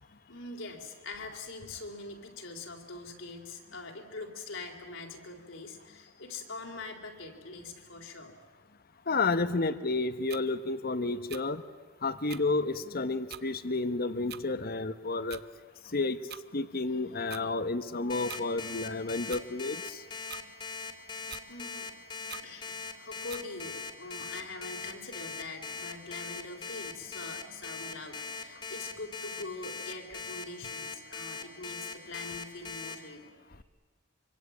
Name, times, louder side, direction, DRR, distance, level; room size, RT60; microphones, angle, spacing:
voice 1, 0.0-8.3 20.1-20.5 21.5-21.9 22.3-33.3, left 3 dB, 65° left, 2 dB, 4.0 m, -43 dB
voice 2, 9.1-11.6 12.0-15.4 15.9-16.2 16.5-20.0, left 3 dB, 50° left, 12 dB, 1.2 m, -31 dB
sound 1, 10.3-10.4 11.3-11.4 12.3-12.4 13.3-13.4 14.3-14.4 15.3-15.5 16.3-16.4 17.3-17.4 18.3-18.4 19.3-19.5 20.3-20.4 21.3-21.5 22.3-22.5 23.3-23.4, right 10 dB, 55° right, 0.8 m, -43 dB
Alarm, 18.1-32.9, left 4 dB, 25° left, 2.7 m, -40 dB
25.0 x 25.0 x 8.7 m, 1.3 s
head